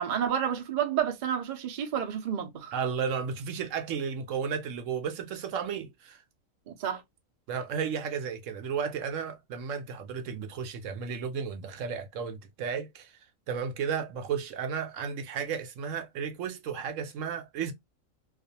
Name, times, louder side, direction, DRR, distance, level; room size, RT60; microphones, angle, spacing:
voice 1, 0.0-2.7 6.7-7.0, right 9 dB, 55° right, 0.5 m, -30 dB
voice 2, 2.7-6.2 7.5-13.2 13.5-17.7, right 6 dB, 70° right, 0.9 m, -33 dB
2.4 x 2.4 x 2.7 m
omnidirectional pair, 1.4 m